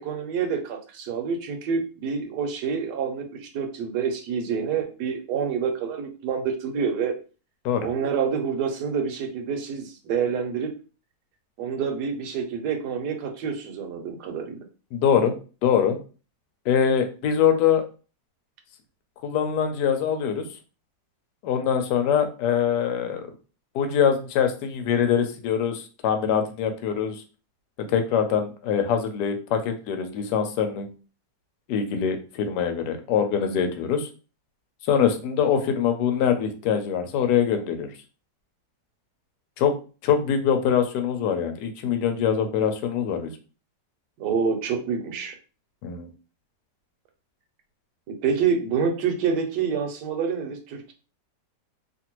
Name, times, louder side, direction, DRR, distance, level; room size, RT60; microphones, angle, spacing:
voice 1, 0.0-7.1 7.8-10.7 11.6-14.6 44.2-45.3 48.1-50.9, right 6 dB, 70° right, 4 dB, 1.2 m, -27 dB
voice 2, 14.9-15.4 15.6-16.0 16.7-17.8 19.2-20.5 21.4-23.3 23.7-27.2 27.8-30.9 31.7-34.1 34.8-37.9 39.6-39.7 40.0-43.3 45.8-46.1, left 8 dB, 75° left, 6 dB, 1.1 m, -23 dB
2.8 x 2.5 x 2.9 m, 0.36 s
omnidirectional pair, 2.0 m